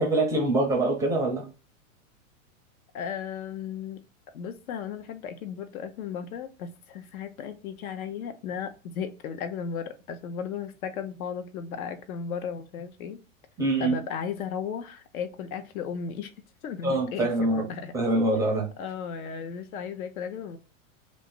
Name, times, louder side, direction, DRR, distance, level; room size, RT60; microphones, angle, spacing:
voice 1, 0.0-1.4 13.6-14.0 16.8-17.7 17.9-18.7, right 2 dB, 10° right, 0 dB, 0.4 m, -24 dB
voice 2, 2.9-4.0 4.3-13.2 13.8-16.3 16.6-17.9 18.8-20.6, left 7 dB, 80° left, 9 dB, 0.7 m, -35 dB
2.5 x 2.4 x 3.7 m, 0.33 s
hypercardioid pair, 135°, 42 cm